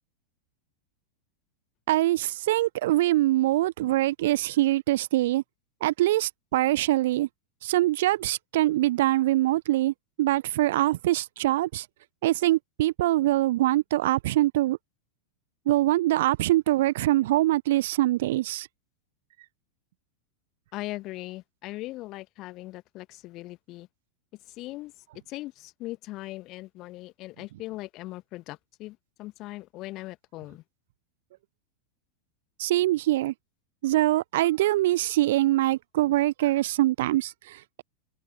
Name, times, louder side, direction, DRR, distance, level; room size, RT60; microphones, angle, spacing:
voice 1, 1.9-5.4 5.8-7.3 7.6-11.9 12.2-14.8 15.7-18.7 32.6-33.3 33.8-37.8, right 16 dB, 55° right, 1.0 m, -24 dB
voice 2, 20.7-23.9 24.5-24.9 25.3-30.6, left 18 dB, 40° left, 1.6 m, -39 dB
open air
figure-of-eight pair, 90°, 0 cm